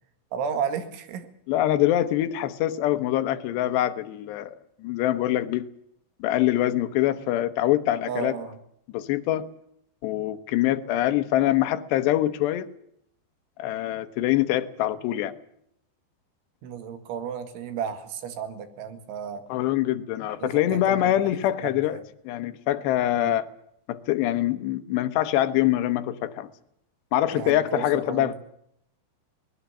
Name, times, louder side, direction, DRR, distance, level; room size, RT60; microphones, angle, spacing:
voice 1, 0.3-1.3 8.1-8.6 16.6-19.4 20.4-21.2 21.6-22.0 23.2-23.3 27.3-28.3, right 7 dB, 85° right, 4.4 m, -33 dB
voice 2, 1.5-4.6 4.8-5.7 6.2-8.4 8.9-9.5 10.0-12.7 13.6-15.3 19.5-23.5 23.9-26.5 27.1-28.3, left 13 dB, 75° left, 3.0 m, -24 dB
22.0 x 20.0 x 7.3 m
omnidirectional pair, 5.3 m